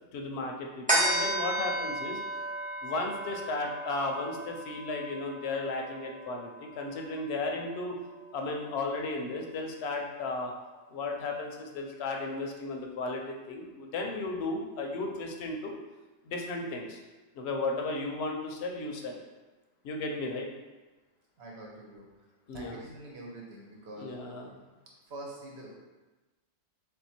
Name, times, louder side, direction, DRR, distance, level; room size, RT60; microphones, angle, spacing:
voice 1, 0.1-2.2 2.8-8.0 8.3-10.5 10.9-15.8 16.2-17.0 17.3-19.2 19.8-20.5 22.5-22.8 24.0-24.5, left 3 dB, 65° left, 1 dB, 0.8 m, -34 dB
sound 1, 0.9-7.6 8.1-8.2, right 1 dB, 10° right, 0.7 m, -34 dB
voice 2, 21.4-22.1 22.5-24.1 25.1-25.7, right 1 dB, 60° right, -2 dB, 1.1 m, -45 dB
3.5 x 2.6 x 4.2 m, 1.2 s
omnidirectional pair, 1.3 m